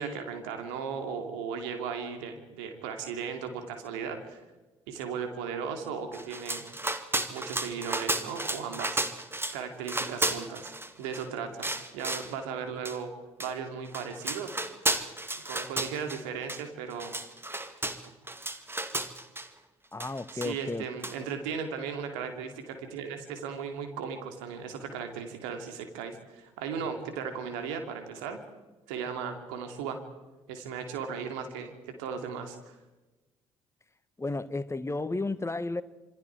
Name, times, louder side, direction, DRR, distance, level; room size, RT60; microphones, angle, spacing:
voice 1, 0.0-4.4 4.9-6.6 7.3-9.0 9.5-10.7 11.0-13.1 13.4-14.6 15.4-17.1 20.3-28.4 28.9-30.0 30.5-32.8, right 6 dB, 70° right, 2.8 m, -36 dB
sound 1, 6.1-9.6 9.9-11.3 11.6-12.3 12.9-13.0 13.4-13.5 13.9-16.2 16.5-16.6 16.9-19.5 20.0-20.7 21.0-21.2, right 2 dB, 15° right, 2.2 m, -33 dB
voice 2, 19.9-20.8 34.2-35.8, left 2 dB, 15° left, 1.5 m, -32 dB
27.0 x 24.5 x 4.7 m
figure-of-eight pair, 45°, 16 cm